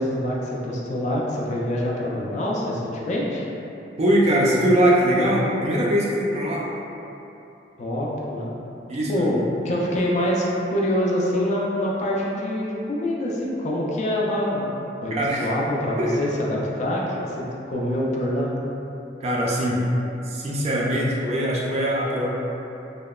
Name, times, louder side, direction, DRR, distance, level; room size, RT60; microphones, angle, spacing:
voice 1, 0.0-3.5 7.8-8.5 9.1-10.4 10.7-14.7 15.0-18.5, left 1 dB, 40° left, -3 dB, 0.3 m, -25 dB
voice 2, 4.0-6.7 8.9-9.3 15.1-15.5 16.0-16.2 19.2-19.9 20.2-22.3, right 1 dB, 35° right, -4 dB, 0.3 m, -21 dB
2.8 x 2.0 x 2.2 m, 2.9 s
head